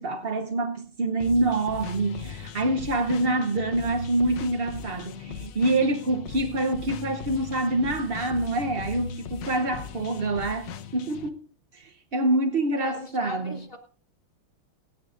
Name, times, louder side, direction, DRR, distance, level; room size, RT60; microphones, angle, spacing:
voice 1, 0.0-11.4 11.7-13.6, right 2 dB, 65° right, 0.5 m, -26 dB
sound 1, 1.2-11.3, left 8 dB, 70° left, 1.4 m, -39 dB
voice 2, 12.8-13.8, left 1 dB, 35° left, 1.2 m, -38 dB
27.5 x 9.7 x 2.5 m
omnidirectional pair, 2.2 m